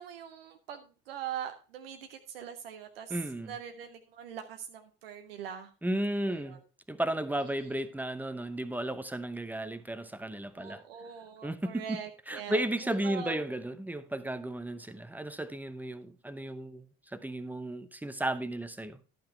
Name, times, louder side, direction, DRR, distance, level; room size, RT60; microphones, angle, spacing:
voice 1, 0.0-3.2 3.4-5.7 6.3-6.6 7.6-7.7 10.6-13.4, right 9 dB, 75° right, 0.8 m, -42 dB
voice 2, 3.1-3.5 5.8-6.6 6.9-10.8 11.4-12.0 12.3-16.9 17.1-19.1, right 1 dB, 5° right, 0.8 m, -34 dB
12.0 x 5.7 x 4.4 m
figure-of-eight pair, 60°, 29 cm